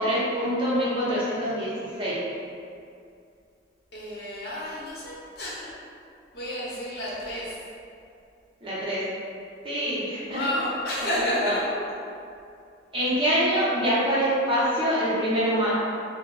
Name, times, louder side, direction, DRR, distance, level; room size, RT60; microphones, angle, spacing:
voice 1, 0.0-1.7 2.0-2.2 8.6-9.0 9.6-10.4 11.1-11.5 12.9-15.7, equal, 30° right, -9 dB, 0.7 m, -25 dB
voice 2, 3.9-5.7 6.3-7.6 10.3-11.6, left 1 dB, 55° left, -7 dB, 0.7 m, -30 dB
2.9 x 2.0 x 3.7 m, 2.4 s
head